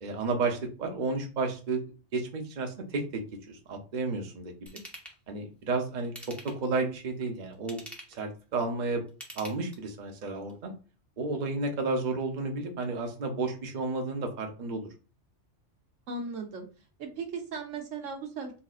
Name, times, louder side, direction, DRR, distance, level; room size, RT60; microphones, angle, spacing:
voice 1, 0.0-1.8 2.1-3.2 3.5-4.5 5.3-7.8 8.1-9.0 9.4-10.7 11.2-14.9, right 3 dB, 45° right, 2 dB, 0.7 m, -32 dB
Ratchet pawl / Tools, 4.7-5.2 6.0-6.7 7.5-8.2 9.1-10.0 10.5-10.6, equal, ahead, 0.6 m, -45 dB
voice 2, 16.1-16.7 17.0-18.5, right 4 dB, 85° right, 3 dB, 1.2 m, -37 dB
4.1 x 2.6 x 2.4 m, 0.35 s
omnidirectional pair, 1.3 m